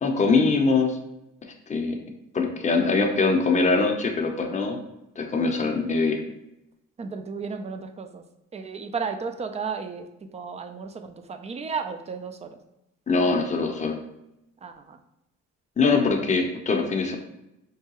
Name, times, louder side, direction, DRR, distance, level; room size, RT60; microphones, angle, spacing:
voice 1, 0.0-1.0 1.7-2.0 2.3-4.8 5.2-6.2 13.1-14.0 15.8-17.2, left 4 dB, 25° left, 2 dB, 0.6 m, -22 dB
voice 2, 7.0-8.2 8.5-10.1 10.3-12.6 14.6-15.0, right 5 dB, 20° right, 7 dB, 0.3 m, -33 dB
4.6 x 2.2 x 2.9 m, 0.87 s
cardioid pair, 90°, 30 cm